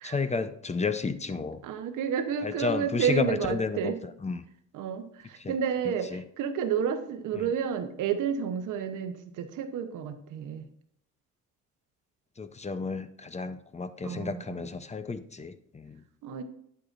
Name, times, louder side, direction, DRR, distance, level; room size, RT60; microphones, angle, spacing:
voice 1, 0.0-1.6 2.4-3.9 4.2-4.4 5.4-5.5 5.8-6.2 7.4-7.5 12.4-16.0, left 4 dB, 20° left, 11 dB, 0.6 m, -32 dB
voice 2, 1.6-4.0 4.7-10.7 14.0-14.7 16.2-16.4, right 7 dB, 85° right, 8 dB, 1.0 m, -31 dB
9.1 x 8.1 x 2.5 m, 0.69 s
cardioid pair, 90°, 30 cm